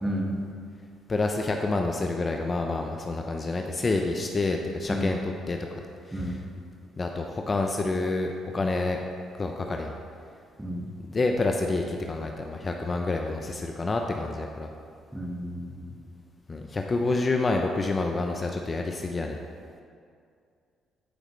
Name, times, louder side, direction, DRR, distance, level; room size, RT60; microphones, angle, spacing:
voice 1, 1.1-5.6 6.1-6.3 7.0-9.0 9.4-9.9 11.1-14.7 16.5-19.4, left 3 dB, 35° left, 3 dB, 0.7 m, -28 dB
voice 2, 15.1-15.9, equal, 10° right, -1 dB, 1.7 m, -32 dB
13.5 x 5.0 x 3.3 m, 2.3 s
hypercardioid pair, 55°, 0 cm